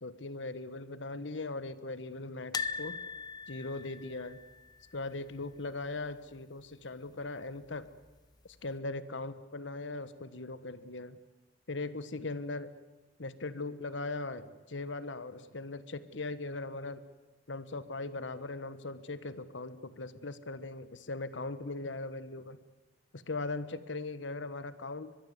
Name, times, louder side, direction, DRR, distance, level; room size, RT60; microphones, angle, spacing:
voice 1, 0.0-3.0 3.5-4.4 4.9-8.0 8.4-11.2 11.7-12.7 13.2-17.0 17.5-22.6 23.1-25.1, left 3 dB, 85° left, 14 dB, 1.3 m, -39 dB
sound 1, 2.5-5.6 5.8-6.1 6.3-6.4 7.6-8.2 8.7-8.8, left 5 dB, 20° left, 0.7 m, -40 dB
23.0 x 22.0 x 8.1 m, 1.2 s
head